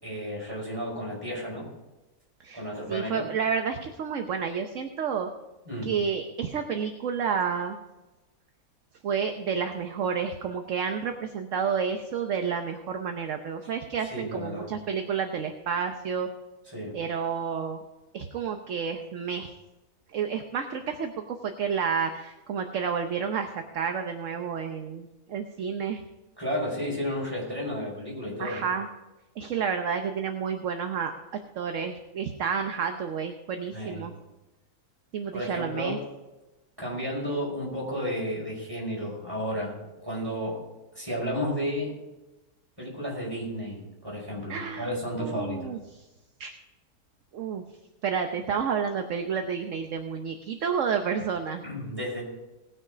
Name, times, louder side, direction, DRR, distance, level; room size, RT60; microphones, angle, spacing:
voice 1, 0.0-1.7 2.5-3.3 5.7-5.9 14.0-14.7 16.7-17.0 26.4-28.6 33.7-34.1 35.3-36.0 36.8-39.7 40.0-40.6 40.9-41.9 42.8-45.7 51.6-52.2, equal, 15° right, -4 dB, 5.0 m, -32 dB
voice 2, 2.9-5.3 5.8-7.8 9.0-16.3 16.9-17.8 18.1-19.5 20.1-26.0 28.4-28.9 29.4-31.1 31.6-34.1 35.1-36.0 44.5-44.9 45.2-45.8 46.4-46.5 47.3-47.6 48.0-51.6, right 6 dB, 55° right, 5 dB, 1.1 m, -30 dB
19.0 x 6.5 x 5.0 m, 1.0 s
omnidirectional pair, 1.8 m